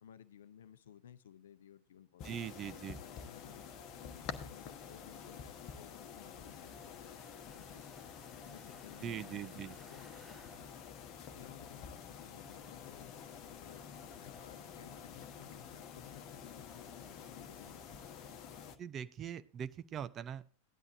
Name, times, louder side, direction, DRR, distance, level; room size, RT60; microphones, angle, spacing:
voice 1, 0.0-3.6 4.0-7.1 7.5-7.9 8.4-10.1 11.3-13.1 13.6-13.8 14.2-17.9, left 9 dB, 60° left, 0.7 m, -57 dB
sound 1, 2.2-18.8, left 7 dB, 35° left, 1.1 m, -49 dB
voice 2, 2.2-3.0 9.0-9.8 18.8-20.6, right 9 dB, 30° right, 0.5 m, -42 dB
sound 2, 6.4-11.6, right 2 dB, 10° right, 1.1 m, -64 dB
16.5 x 11.0 x 2.7 m
figure-of-eight pair, 90°, 0 cm